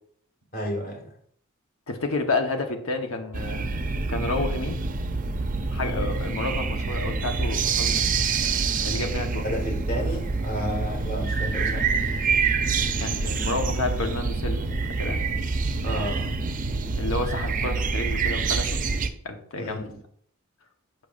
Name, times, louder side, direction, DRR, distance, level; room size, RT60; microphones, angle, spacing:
voice 1, 0.5-1.1 9.4-11.9 15.8-16.3 19.5-20.0, equal, 45° left, 2 dB, 1.6 m, -32 dB
voice 2, 1.9-3.7 4.1-4.8 5.7-8.1 8.8-9.5 13.0-15.2 17.0-18.8 19.2-19.9, left 3 dB, 85° left, 4 dB, 1.0 m, -30 dB
sound 1, 3.3-19.1, right 4 dB, 40° right, 0.5 m, -26 dB
6.8 x 5.8 x 2.5 m, 0.62 s
head